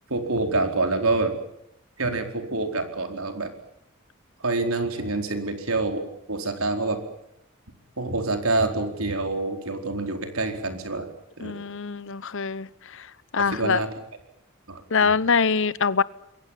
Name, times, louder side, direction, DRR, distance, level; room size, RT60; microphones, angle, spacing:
voice 1, 0.1-1.3 2.0-3.5 4.4-7.0 8.0-11.1 11.4-11.5 13.5-13.9 14.7-15.1, right 2 dB, 80° right, 4.5 m, -26 dB
voice 2, 11.4-13.8 14.9-16.0, left 5 dB, 65° left, 0.9 m, -24 dB
28.0 x 22.5 x 7.5 m
head